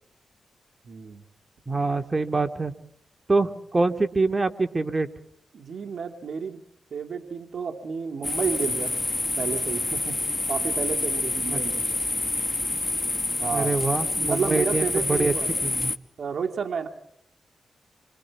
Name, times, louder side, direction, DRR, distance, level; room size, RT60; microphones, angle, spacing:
voice 1, 0.8-1.3 5.5-6.6 6.9-10.2 10.5-12.0 13.4-13.7 14.2-15.5 16.2-16.9, right 6 dB, 70° right, 5 dB, 2.2 m, -31 dB
voice 2, 1.7-2.7 3.3-5.1 11.5-11.6 13.5-15.3 15.6-15.9, right 3 dB, 30° right, 7 dB, 2.3 m, -25 dB
sound 1, 8.2-16.0, left 2 dB, 25° left, 1.3 m, -27 dB
28.0 x 25.0 x 4.7 m, 0.72 s
cardioid pair, 70°, 0 cm